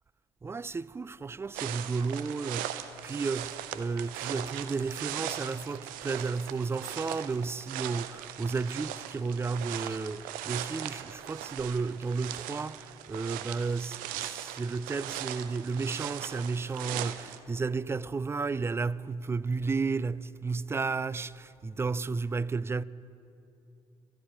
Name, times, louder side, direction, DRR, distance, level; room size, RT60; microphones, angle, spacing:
voice 1, 0.4-22.8, right 4 dB, 15° right, 0.3 m, -33 dB
sound 1, 1.5-17.4, right 12 dB, 65° right, 0.6 m, -39 dB
23.0 x 12.5 x 2.9 m
figure-of-eight pair, 45°, 15 cm